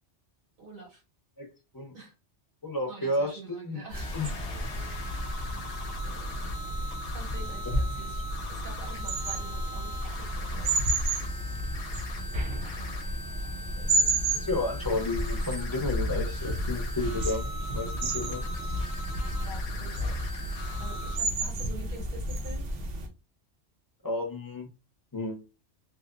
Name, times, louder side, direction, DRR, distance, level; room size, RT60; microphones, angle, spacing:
voice 1, 0.6-1.0 1.9-2.1 2.9-5.0 6.0-6.4 7.0-10.8 12.7-13.0 13.8-14.2 19.4-20.2 20.8-22.7, right 3 dB, 55° right, 1 dB, 0.8 m, -47 dB
voice 2, 2.6-3.8 4.1-4.3 7.7-7.8 14.3-18.4 24.0-24.7 25.1-25.4, left 2 dB, 25° left, 1 dB, 0.5 m, -32 dB
sound 1, 3.9-21.2, left 2 dB, 65° left, 0.7 m, -41 dB
sound 2, 3.9-23.1, right 1 dB, 85° right, 1.0 m, -32 dB
2.8 x 2.0 x 2.4 m, 0.28 s
omnidirectional pair, 1.2 m